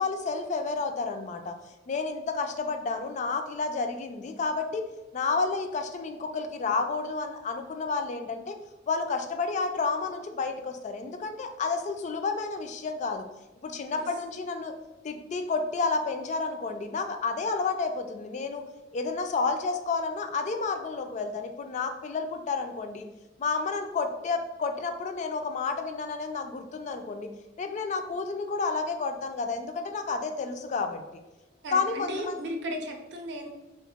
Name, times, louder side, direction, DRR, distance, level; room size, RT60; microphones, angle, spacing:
voice 1, 0.0-1.5 1.9-8.6 8.9-13.3 13.6-14.7 15.0-18.6 18.9-23.1 23.4-27.3 27.6-31.0 31.7-32.4, left 4 dB, 40° left, 7 dB, 0.3 m, -30 dB
voice 2, 31.6-33.5, equal, 70° right, 3 dB, 0.6 m, -35 dB
2.8 x 2.5 x 3.4 m, 1.0 s
head